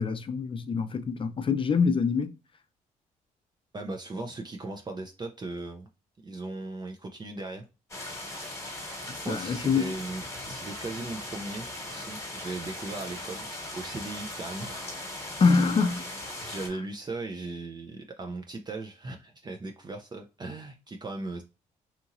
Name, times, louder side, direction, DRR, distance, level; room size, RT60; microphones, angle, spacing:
voice 1, 0.0-2.3 9.3-9.9 15.4-16.0, left 5 dB, 35° left, 0.5 m, -25 dB
voice 2, 3.7-5.9 6.2-7.6 9.2-13.5 13.7-14.9 16.4-21.4, right 2 dB, 25° right, 0.5 m, -38 dB
sound 1, 7.9-16.7, left 1 dB, 15° left, 1.3 m, -39 dB
2.8 x 2.7 x 2.5 m
supercardioid pair, 60°, 16 cm